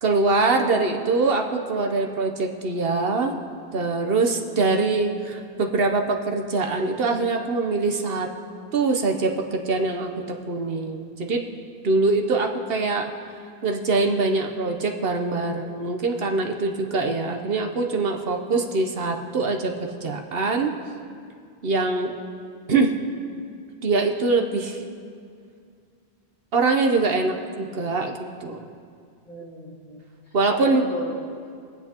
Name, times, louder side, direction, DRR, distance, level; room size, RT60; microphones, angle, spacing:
voice 1, 0.0-3.3 3.7-8.3 8.7-11.4 11.8-13.1 13.6-19.7 20.0-20.7 21.6-22.1 22.7-23.0 23.8-24.8 26.5-28.7 30.3-30.8, right 3 dB, 65° right, 3 dB, 1.0 m, -23 dB
voice 2, 29.3-30.0 30.5-31.5, left 1 dB, 35° left, -4 dB, 1.7 m, -33 dB
24.0 x 8.0 x 2.9 m, 2.3 s
omnidirectional pair, 1.1 m